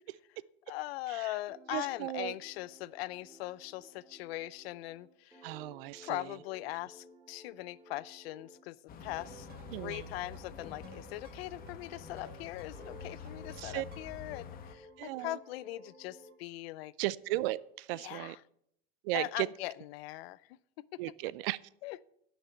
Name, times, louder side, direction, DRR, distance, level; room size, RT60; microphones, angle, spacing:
voice 1, 0.7-5.5 6.0-8.8 9.0-16.9 17.9-18.4 19.1-20.6 20.9-21.0 21.8-22.0, left 17 dB, 80° left, 20 dB, 0.6 m, -41 dB
sound 1, 1.5-8.7 9.1-12.4 12.7-16.4, right 1 dB, 10° right, 2.2 m, -56 dB
voice 2, 1.7-2.3 5.4-6.2 9.7-10.1 13.6-13.8 15.0-15.4 17.0-18.4 19.0-19.5 21.0-21.6, right 18 dB, 70° right, 20 dB, 0.5 m, -35 dB
sound 2, 8.9-14.7, left 6 dB, 30° left, 1.0 m, -48 dB
sound 3, 9.0-14.3, right 4 dB, 35° right, 2.5 m, -59 dB
10.0 x 6.0 x 7.9 m, 0.73 s
supercardioid pair, 150°, 30 cm